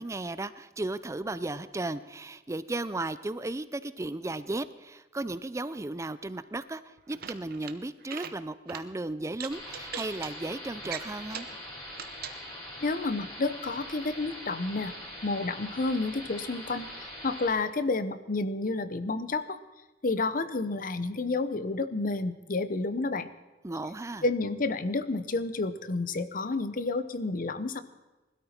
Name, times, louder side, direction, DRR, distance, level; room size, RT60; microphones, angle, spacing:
voice 1, 0.0-11.5 23.6-24.2, right 2 dB, 15° right, 15 dB, 0.4 m, -35 dB
sound 1, 7.0-7.7 8.0-8.3 8.7-8.8 9.3-10.3 10.8-11.6 11.9-12.4, right 8 dB, 60° right, 0.9 m, -40 dB
sound 2, 9.5-17.5, equal, 25° left, 4.8 m, -43 dB
voice 2, 12.8-14.9 15.2-19.6 20.0-23.3 24.2-27.8, left 3 dB, 50° left, 12 dB, 0.8 m, -30 dB
20.5 x 12.5 x 4.4 m, 1.1 s
head